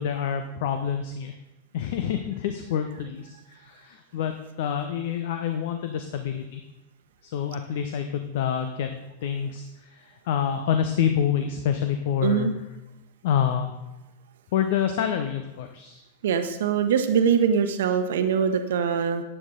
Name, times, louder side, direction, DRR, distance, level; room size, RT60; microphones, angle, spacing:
voice 1, 0.0-1.3 1.7-6.6 7.2-8.9 9.2-12.5 13.2-13.7 14.5-16.0, left 8 dB, 55° left, 7 dB, 0.9 m, -27 dB
voice 2, 12.2-12.5 16.2-19.2, right 7 dB, 60° right, 8 dB, 1.1 m, -23 dB
15.0 x 10.0 x 3.9 m, 1.0 s
figure-of-eight pair, 90°, 0 cm